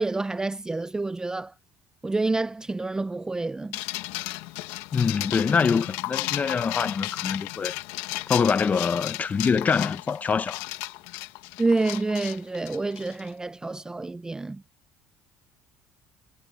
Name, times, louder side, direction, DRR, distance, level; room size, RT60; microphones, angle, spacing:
voice 1, 0.0-1.5 2.0-3.8 11.6-14.6, right 3 dB, 10° right, 0.4 m, -28 dB
sound 1, 3.7-13.3, left 19 dB, 85° left, 1.7 m, -34 dB
voice 2, 4.9-7.7 8.3-10.6, left 5 dB, 30° left, 1.1 m, -24 dB
supercardioid pair, 105°, 6 cm